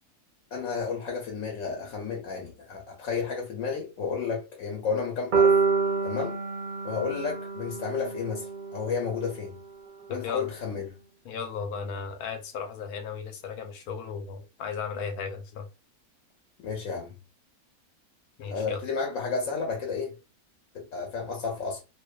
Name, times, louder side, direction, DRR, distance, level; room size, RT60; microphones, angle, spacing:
voice 1, 0.5-5.6 6.0-6.4 6.8-9.6 10.1-11.0 16.6-17.2 18.5-20.1 20.7-21.8, left 5 dB, 70° left, 1.0 m, -32 dB
sound 1, 5.3-9.4, right 5 dB, 80° right, 0.4 m, -27 dB
voice 2, 10.1-10.5 11.2-15.7 18.4-18.8, left 6 dB, 90° left, 1.1 m, -35 dB
2.5 x 2.2 x 2.2 m
omnidirectional pair, 1.6 m